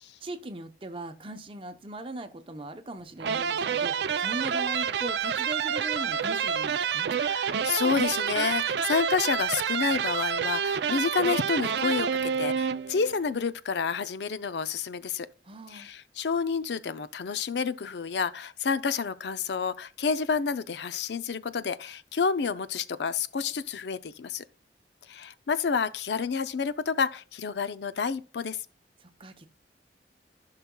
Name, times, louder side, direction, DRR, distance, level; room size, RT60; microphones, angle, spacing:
voice 1, 0.2-7.1 15.4-15.9 29.0-29.5, right 2 dB, 30° right, 0.8 m, -39 dB
sound 1, 3.2-13.2, right 7 dB, 75° right, 0.4 m, -28 dB
voice 2, 7.1-15.3 15.7-24.4 25.1-28.6, left 5 dB, 75° left, 0.5 m, -29 dB
14.5 x 5.7 x 2.3 m
head